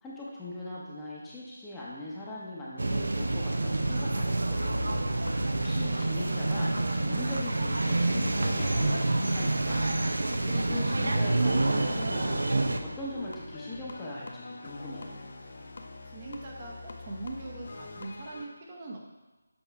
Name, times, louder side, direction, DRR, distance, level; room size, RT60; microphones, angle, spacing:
voice 1, 0.0-9.8 10.5-12.5 12.8-15.3, left 1 dB, 10° left, -7 dB, 0.8 m, -40 dB
sound 1, 2.8-12.8, right 2 dB, 75° right, 0.6 m, -27 dB
sound 2, 4.7-18.5, left 2 dB, 50° left, 0.7 m, -44 dB
voice 2, 16.1-19.0, right 2 dB, 30° right, -1 dB, 0.8 m, -41 dB
7.2 x 4.3 x 3.3 m, 1.1 s
figure-of-eight pair, 165°, 0 cm